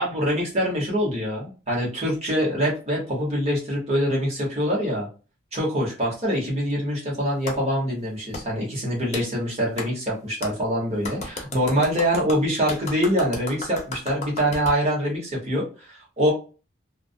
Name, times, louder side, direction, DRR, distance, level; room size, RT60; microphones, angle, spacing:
voice 1, 0.0-5.1 5.5-16.3, equal, 30° right, -4 dB, 1.0 m, -24 dB
Clapping, 7.5-7.6 8.3-8.4 9.1-9.3 9.8-9.9 10.4-10.5 11.0-14.8, left 3 dB, 35° left, 0.6 m, -34 dB
2.3 x 2.0 x 2.6 m, 0.34 s
head